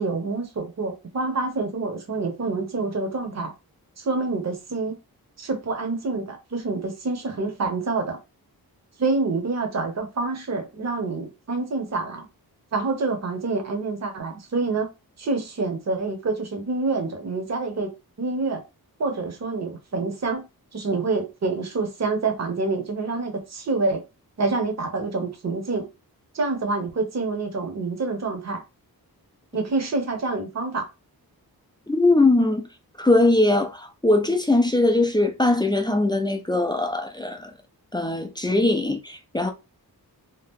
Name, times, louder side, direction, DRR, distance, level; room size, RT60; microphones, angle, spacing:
voice 1, 0.0-3.5 4.0-5.0 5.4-8.2 9.0-12.3 12.7-14.9 15.2-17.9 18.2-18.6 19.0-20.4 20.7-24.0 24.4-25.9 26.3-28.6 29.5-30.9, right 3 dB, 45° right, 0.9 m, -27 dB
voice 2, 31.9-32.7 33.0-37.5 37.9-39.5, left 2 dB, 10° left, 0.4 m, -21 dB
2.8 x 2.4 x 3.5 m
wide cardioid pair, 150°, 38 cm